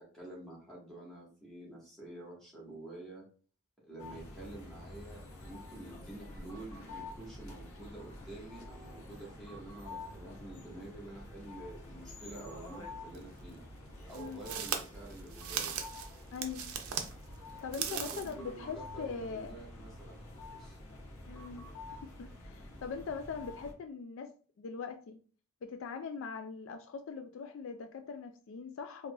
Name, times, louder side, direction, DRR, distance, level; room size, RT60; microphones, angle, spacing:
voice 1, 0.1-3.2 3.8-13.6 14.1-15.7 17.7-20.2 20.6-20.8, right 2 dB, ahead, -6 dB, 1.4 m, -48 dB
sound 1, 4.0-23.7, left 2 dB, 90° left, 0.9 m, -48 dB
sound 2, 13.1-13.2 14.1-17.1 17.6-18.3, right 8 dB, 85° right, 0.5 m, -38 dB
voice 2, 16.3-16.7 17.6-19.5 21.3-24.3 24.6-25.2 25.6-29.1, left 5 dB, 65° left, 8 dB, 0.3 m, -41 dB
3.7 x 2.9 x 2.3 m, 0.40 s
head